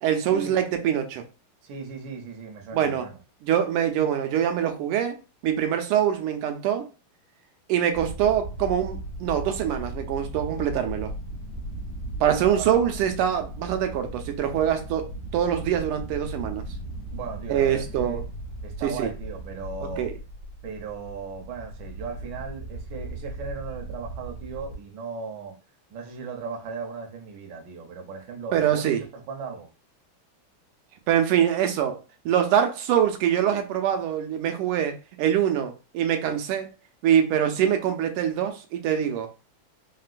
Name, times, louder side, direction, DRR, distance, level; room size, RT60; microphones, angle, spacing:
voice 1, 0.0-1.2 2.7-3.1 3.4-6.9 7.7-11.1 12.2-16.7 17.5-18.3 18.8-19.1 19.8-20.1 28.5-29.0 31.1-36.7 37.0-39.3, right 9 dB, 85° right, 1.5 m, -24 dB
voice 2, 1.6-3.2 12.6-12.7 17.1-18.2 18.6-20.1 20.6-25.6 25.9-29.7, right 5 dB, 65° right, 1.2 m, -37 dB
sound 1, 7.9-24.8, right 1 dB, 65° left, 1.0 m, -37 dB
3.7 x 2.2 x 2.4 m
omnidirectional pair, 2.4 m